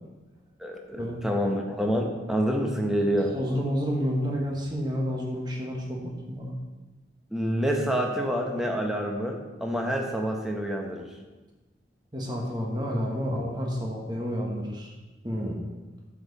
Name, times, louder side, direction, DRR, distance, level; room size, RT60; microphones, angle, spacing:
voice 1, 0.6-3.3 7.3-11.1, equal, 5° right, 1 dB, 1.0 m, -27 dB
voice 2, 3.3-6.5 12.1-14.9 15.2-15.6, equal, 25° right, -1 dB, 1.5 m, -30 dB
10.5 x 7.4 x 4.2 m, 1.2 s
head